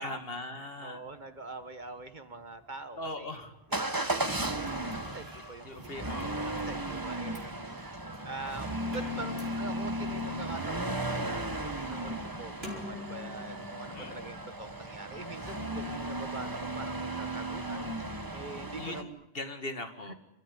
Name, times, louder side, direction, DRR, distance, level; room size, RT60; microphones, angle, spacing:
voice 1, 0.0-1.0 3.0-3.5 5.6-6.7 13.9-14.3 18.8-20.1, left 2 dB, 65° left, 7 dB, 2.4 m, -40 dB
voice 2, 0.5-3.4 3.8-19.2 20.1-20.2, right 3 dB, 45° right, 10 dB, 1.7 m, -44 dB
Motor vehicle (road) / Engine starting / Accelerating revving vroom, 3.7-19.0, right 1 dB, 20° right, 1.4 m, -35 dB
sound 1, 4.2-15.1, left 2 dB, 70° right, 5.0 m, -49 dB
29.5 x 14.5 x 9.8 m, 0.86 s
omnidirectional pair, 1.1 m